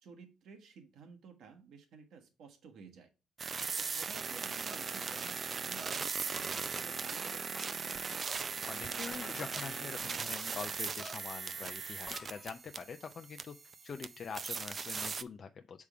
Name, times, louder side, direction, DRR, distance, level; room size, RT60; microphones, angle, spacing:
voice 1, 0.0-3.1 3.8-8.0, right 5 dB, 75° right, 4 dB, 1.3 m, -54 dB
sound 1, 3.4-15.2, right 5 dB, 40° right, 0.4 m, -39 dB
sound 2, 6.2-12.7, left 3 dB, 30° left, 1.0 m, -53 dB
voice 2, 8.6-13.6 13.8-15.9, left 6 dB, 50° left, 7 dB, 0.5 m, -45 dB
6.7 x 3.6 x 4.9 m, 0.30 s
cardioid pair, 90°, 0 cm